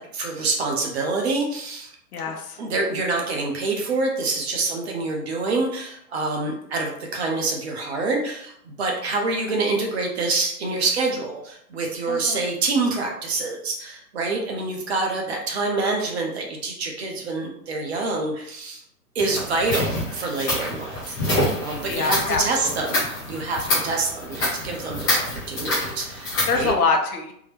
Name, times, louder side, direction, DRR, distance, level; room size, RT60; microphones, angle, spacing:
voice 1, 0.0-1.9 2.6-18.8 19.1-23.0 23.3-26.7, right 3 dB, 40° right, 0 dB, 0.8 m, -26 dB
voice 2, 2.1-2.6 12.1-12.4 21.9-23.0 26.5-27.3, left 4 dB, 65° left, 3 dB, 0.8 m, -25 dB
sound 1, 19.2-26.7, left 1 dB, 10° left, 0.5 m, -27 dB
3.5 x 2.1 x 3.3 m, 0.71 s
hypercardioid pair, 140°, 49 cm